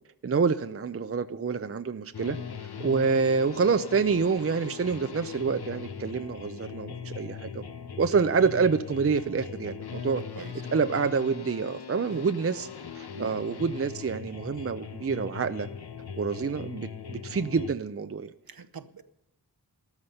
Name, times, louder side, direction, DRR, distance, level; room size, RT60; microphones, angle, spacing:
voice 1, 0.2-2.4 2.8-7.6 8.0-10.2 10.7-12.7 13.0-15.7 16.2-18.3, right 5 dB, 35° right, 11 dB, 0.5 m, -27 dB
sound 1, 2.1-17.7, left 7 dB, 75° left, 0.7 m, -40 dB
voice 2, 18.5-19.0, right 5 dB, 65° right, 11 dB, 0.8 m, -43 dB
13.5 x 13.0 x 5.6 m, 0.85 s
wide cardioid pair, 40°, 38 cm